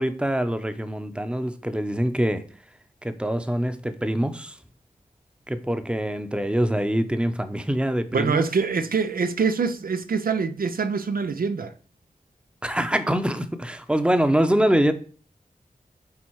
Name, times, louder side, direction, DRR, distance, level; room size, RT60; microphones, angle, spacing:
voice 1, 0.0-2.4 3.0-4.6 5.5-8.5 12.6-14.9, right 1 dB, 5° right, 0.8 m, -24 dB
voice 2, 8.1-11.7, right 5 dB, 80° right, 0.6 m, -25 dB
8.4 x 4.1 x 4.6 m
wide cardioid pair, 85°, 15 cm